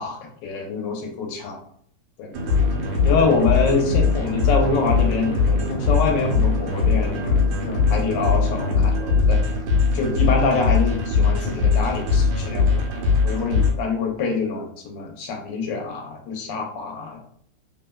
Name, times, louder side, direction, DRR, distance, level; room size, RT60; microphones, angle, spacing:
voice 1, 0.0-1.6 2.2-2.3 3.0-9.4 9.9-12.8 13.2-17.2, left 4 dB, 80° left, 2 dB, 1.3 m, -25 dB
sound 1, 2.3-13.7, left 4 dB, 90° right, 1.4 m, -21 dB
3.3 x 2.0 x 2.2 m, 0.63 s
omnidirectional pair, 2.0 m